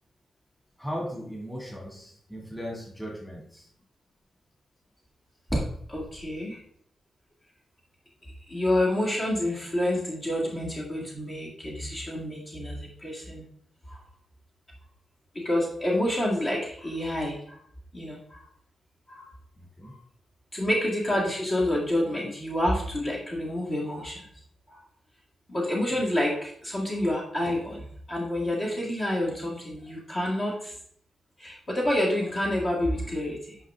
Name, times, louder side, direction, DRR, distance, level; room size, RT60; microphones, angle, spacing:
voice 1, 0.8-3.7 19.6-19.9, equal, 5° left, -3 dB, 2.1 m, -37 dB
voice 2, 6.1-6.6 8.5-13.4 13.9-14.0 15.3-17.6 17.9-18.5 19.1-19.3 19.8-19.9 20.5-24.3 24.7-24.8 25.5-30.7 31.4-33.6, left 1 dB, 30° left, -4 dB, 1.8 m, -28 dB
9.9 x 5.3 x 3.5 m, 0.65 s
wide cardioid pair, 175°, 0 cm